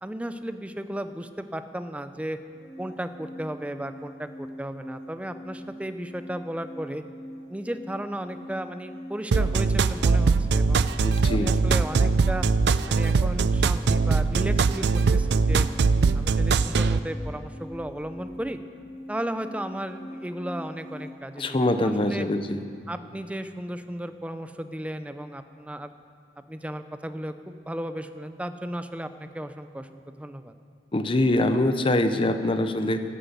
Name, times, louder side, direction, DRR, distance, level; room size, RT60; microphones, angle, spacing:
voice 1, 0.0-2.4 2.8-7.0 7.5-10.9 11.3-12.5 12.9-15.7 16.1-18.6 19.1-22.3 22.9-25.9 26.5-30.5, right 1 dB, 10° right, 10 dB, 0.5 m, -35 dB
sound 1, 2.5-21.1, equal, 45° left, 3.2 m, -44 dB
sound 2, 9.3-17.0, right 4 dB, 65° right, 0.4 m, -21 dB
voice 2, 11.0-11.5 21.4-22.6 30.9-33.0, left 1 dB, 30° left, 9 dB, 0.7 m, -24 dB
13.5 x 10.0 x 8.1 m, 2.5 s
head